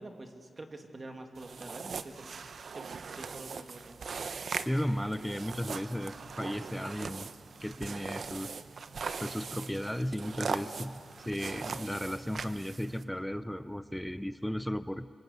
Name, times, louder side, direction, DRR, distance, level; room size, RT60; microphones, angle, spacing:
voice 1, 0.0-2.3 2.7-2.9 3.2-4.0, right 2 dB, 30° right, 5 dB, 2.3 m, -46 dB
sound 1, 1.4-13.0, right 5 dB, 60° right, 0.9 m, -40 dB
voice 2, 4.6-7.3 7.6-8.6 9.2-15.1, equal, 5° left, 13 dB, 0.6 m, -35 dB
26.5 x 24.5 x 8.1 m, 2.2 s
wide cardioid pair, 125°, 0 cm